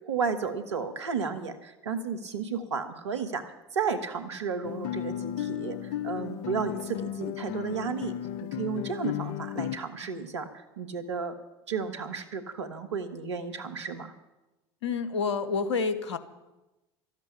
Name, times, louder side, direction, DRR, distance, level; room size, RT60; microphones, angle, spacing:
voice 1, 0.1-8.1 8.6-10.5 10.8-11.3 11.7-14.1, right 5 dB, 80° right, 8 dB, 1.3 m, -33 dB
Guitar, 4.6-9.8, left 11 dB, 60° left, 0.6 m, -34 dB
voice 2, 14.8-16.2, left 5 dB, 80° left, 11 dB, 1.0 m, -28 dB
13.0 x 8.1 x 10.0 m, 1.0 s
hypercardioid pair, 70°, 15 cm